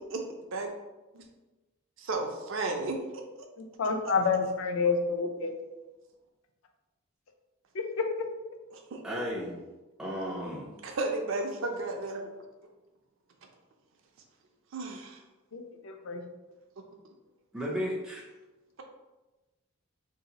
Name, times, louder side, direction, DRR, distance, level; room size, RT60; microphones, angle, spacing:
voice 1, 2.0-3.2 8.7-9.0 10.8-12.3 14.7-15.2, right 2 dB, 60° right, 2 dB, 0.4 m, -33 dB
voice 2, 3.8-5.5 8.0-8.1 15.5-16.2, left 4 dB, 60° left, 5 dB, 0.4 m, -28 dB
voice 3, 9.0-9.6 10.0-10.7 17.5-18.2, equal, 5° right, -5 dB, 0.4 m, -34 dB
2.7 x 2.3 x 3.9 m, 1.1 s
head